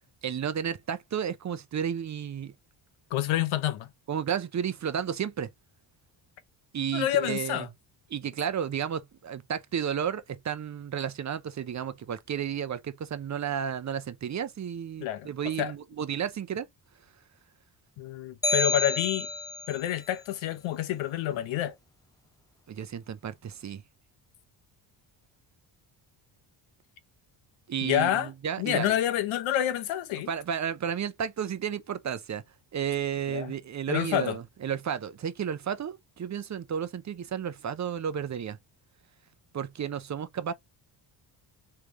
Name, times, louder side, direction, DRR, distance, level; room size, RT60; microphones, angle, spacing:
voice 1, 0.2-2.5 4.1-5.5 6.7-7.6 8.1-16.7 22.7-23.8 27.7-29.0 30.3-32.4 32.7-38.6 39.5-40.5, right 8 dB, 40° right, 0.7 m, -32 dB
voice 2, 3.1-3.9 6.9-7.7 15.0-15.3 15.6-15.7 18.0-19.3 19.7-21.7 27.8-28.3 28.6-30.3 33.3-33.5 33.9-34.4, left 12 dB, 90° left, 0.9 m, -28 dB
sound 1, 18.4-19.8, left 2 dB, 10° left, 0.7 m, -29 dB
3.4 x 3.3 x 2.8 m
cardioid pair, 85°, 46 cm